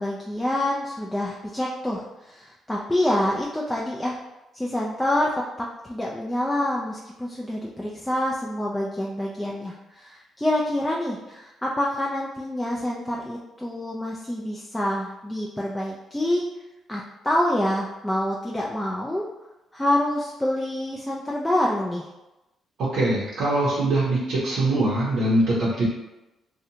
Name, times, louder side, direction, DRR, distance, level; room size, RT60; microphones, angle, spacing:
voice 1, 0.0-4.2 4.5-5.3 5.6-16.4 16.9-19.2 19.7-22.1, left 1 dB, 10° left, -3 dB, 0.3 m, -27 dB
voice 2, 22.8-25.9, right 1 dB, 70° right, -7 dB, 0.6 m, -22 dB
2.6 x 2.1 x 2.7 m, 0.99 s
cardioid pair, 90°, 0 cm